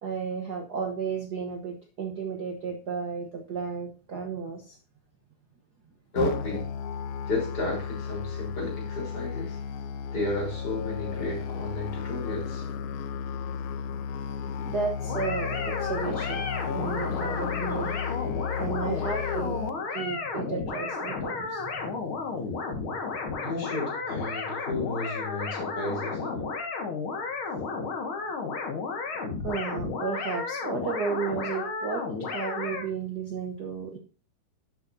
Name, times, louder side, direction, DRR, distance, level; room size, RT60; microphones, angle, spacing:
voice 1, 0.0-4.8 14.6-18.0 18.6-22.0 22.3-23.2 29.4-34.0, right 5 dB, 70° right, 2 dB, 0.9 m, -33 dB
voice 2, 6.1-6.7 7.3-9.6 10.1-12.7 23.4-26.4, left 2 dB, 30° left, -3 dB, 4.6 m, -32 dB
Musical instrument, 6.2-19.7, left 6 dB, 80° left, 2.2 m, -33 dB
sound 1, 15.0-32.9, left 4 dB, 45° left, 2.3 m, -33 dB
11.5 x 8.0 x 2.7 m, 0.36 s
omnidirectional pair, 3.6 m